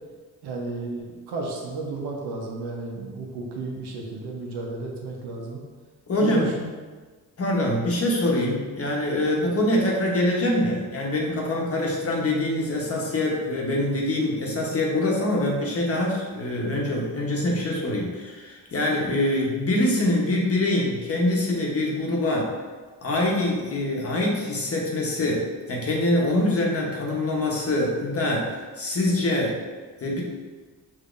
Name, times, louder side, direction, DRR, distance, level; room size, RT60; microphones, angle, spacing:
voice 1, 0.4-5.6 6.2-6.7, right 3 dB, 75° right, -1 dB, 0.9 m, -33 dB
voice 2, 6.1-6.5 7.4-22.5 23.0-29.6 30.0-30.2, left 1 dB, 35° left, -2 dB, 1.0 m, -24 dB
5.0 x 2.8 x 2.5 m, 1.4 s
cardioid pair, 75°, 40 cm